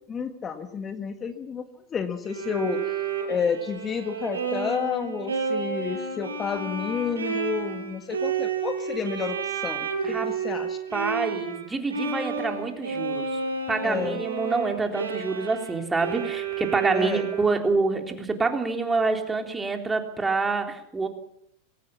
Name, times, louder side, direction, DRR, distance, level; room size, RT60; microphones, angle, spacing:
voice 1, 0.1-1.6 1.9-3.0 3.3-9.9 10.2-10.8 13.8-14.2 16.9-17.3, left 6 dB, 25° left, 8 dB, 1.7 m, -30 dB
Bowed string instrument, 2.3-11.6 11.9-17.7, right 6 dB, 90° right, 5.4 m, -31 dB
voice 2, 10.0-10.3 10.9-13.4 13.7-21.1, right 3 dB, 15° right, 4 dB, 3.6 m, -27 dB
21.5 x 17.5 x 7.2 m, 0.70 s
hypercardioid pair, 100°, 0 cm